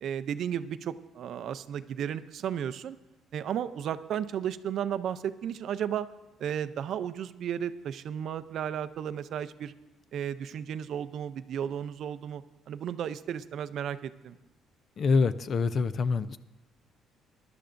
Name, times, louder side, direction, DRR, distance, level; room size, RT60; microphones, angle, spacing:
voice 1, 0.0-3.0 3.3-6.1 6.4-9.7 10.1-14.4, right 9 dB, 50° right, 13 dB, 0.5 m, -34 dB
voice 2, 15.0-16.4, left 4 dB, 35° left, 14 dB, 0.4 m, -25 dB
22.0 x 11.5 x 2.6 m, 1.1 s
cardioid pair, 175°, 0 cm